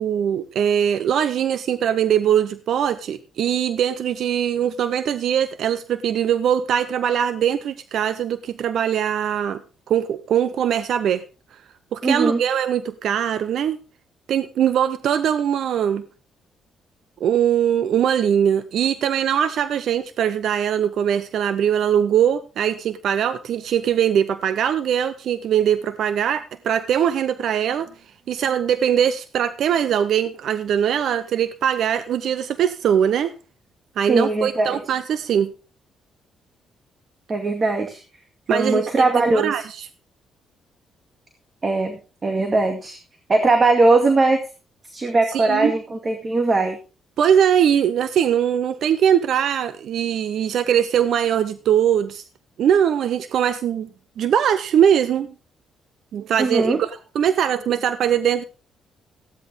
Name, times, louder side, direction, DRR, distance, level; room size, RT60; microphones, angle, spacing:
voice 1, 0.0-9.6 9.9-11.2 11.9-13.8 14.3-16.0 17.2-27.9 28.3-33.3 34.0-35.5 38.5-39.9 45.3-45.7 47.2-52.2 52.6-53.9 54.2-55.3 56.1-58.4, right 9 dB, 70° right, 13 dB, 0.7 m, -21 dB
voice 2, 12.0-12.4 34.1-34.8 37.3-38.0 38.5-39.6 41.6-43.0 43.3-44.4 44.9-46.8 56.4-56.8, right 3 dB, 35° right, 5 dB, 2.1 m, -20 dB
15.0 x 10.0 x 3.5 m, 0.34 s
cardioid pair, 90°, 0 cm